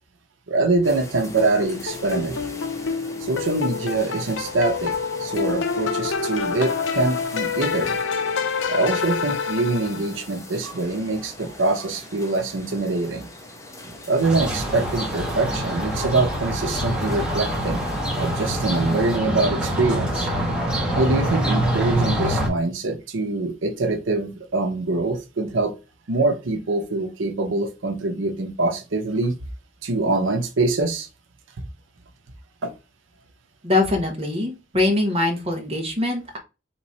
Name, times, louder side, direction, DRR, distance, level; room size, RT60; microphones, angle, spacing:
voice 1, 0.5-2.4 3.2-4.9 5.2-7.9 8.7-13.3 14.1-17.8 18.2-20.3 21.0-25.7 26.1-29.3 29.8-31.1 32.6-32.7, right 3 dB, 85° right, 5 dB, 0.7 m, -24 dB
sound 1, 0.8-19.2, left 1 dB, 15° left, 0.9 m, -42 dB
sound 2, 1.4-10.3, left 5 dB, 75° left, 0.6 m, -27 dB
sound 3, 14.2-22.5, equal, 5° right, 1.1 m, -25 dB
voice 2, 33.6-36.4, left 2 dB, 30° right, 3 dB, 1.1 m, -23 dB
3.7 x 3.0 x 4.1 m, 0.28 s
head